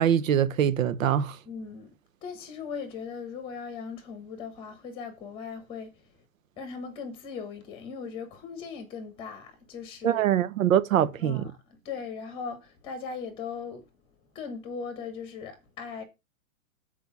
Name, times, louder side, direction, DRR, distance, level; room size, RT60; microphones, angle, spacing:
voice 1, 0.0-1.4 10.0-11.4, right 10 dB, 70° right, 1.0 m, -23 dB
voice 2, 1.4-1.9 2.2-6.1 6.6-10.3 11.2-13.8 14.3-16.0, left 5 dB, 15° left, 1.2 m, -39 dB
7.8 x 4.6 x 5.8 m
supercardioid pair, 170°, 41 cm